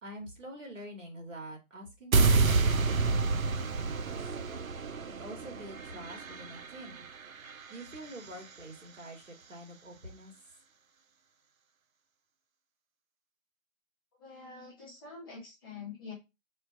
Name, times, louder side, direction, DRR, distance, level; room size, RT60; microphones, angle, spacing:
voice 1, 0.0-4.2 5.1-7.0 7.7-10.3, right 1 dB, 65° right, 2 dB, 1.9 m, -46 dB
sound 1, 2.1-8.3, right 4 dB, 80° right, 0.8 m, -29 dB
voice 2, 14.2-16.1, left 5 dB, 15° left, -5 dB, 1.2 m, -46 dB
4.2 x 2.6 x 4.7 m, 0.24 s
figure-of-eight pair, 165°, 40 cm